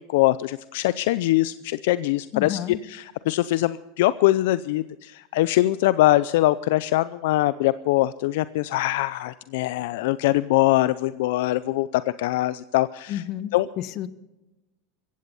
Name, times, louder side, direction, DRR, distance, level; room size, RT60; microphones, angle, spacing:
voice 1, 0.0-13.2 13.5-13.7, left 16 dB, 75° left, 16 dB, 0.5 m, -23 dB
voice 2, 2.3-2.8 13.1-14.1, left 11 dB, 50° left, 14 dB, 1.2 m, -31 dB
16.0 x 16.0 x 5.5 m, 0.99 s
supercardioid pair, 115°, 0 cm